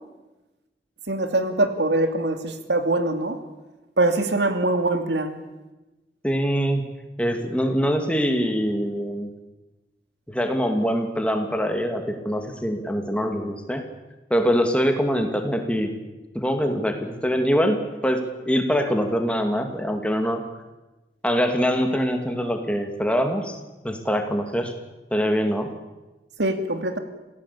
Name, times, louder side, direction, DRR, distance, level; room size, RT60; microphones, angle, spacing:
voice 1, 1.1-3.4 4.0-5.3 26.4-27.0, right 2 dB, 85° right, 8 dB, 2.5 m, -23 dB
voice 2, 6.2-6.8 7.2-9.3 10.3-13.8 14.3-15.9 16.3-20.4 21.2-23.6 23.8-24.7 25.1-25.7, equal, 5° left, 5 dB, 2.5 m, -23 dB
27.5 x 16.5 x 8.6 m, 1.1 s
head